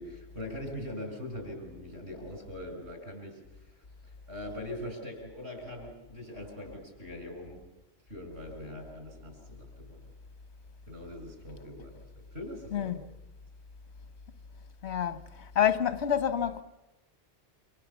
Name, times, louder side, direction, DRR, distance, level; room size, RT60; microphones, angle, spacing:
voice 1, 0.0-7.6 8.1-10.0 10.9-12.1 12.3-12.9, left 1 dB, 80° right, 6.9 m, -42 dB
voice 2, 14.8-15.2 15.5-16.6, left 9 dB, 85° left, 1.4 m, -27 dB
28.0 x 26.5 x 7.3 m
omnidirectional pair, 1.1 m